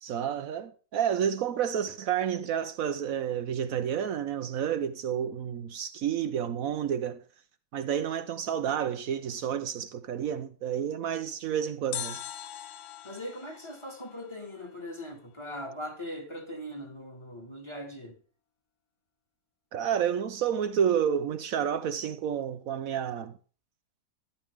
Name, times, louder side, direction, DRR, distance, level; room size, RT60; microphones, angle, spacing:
voice 1, 0.0-7.2 7.7-12.2 19.7-23.3, right 8 dB, 70° right, 1.1 m, -30 dB
sound 1, 11.9-15.0 15.3-15.4, left 11 dB, 85° left, 1.3 m, -41 dB
voice 2, 13.0-18.2, equal, 20° left, 2.0 m, -40 dB
12.0 x 11.5 x 3.5 m
omnidirectional pair, 1.6 m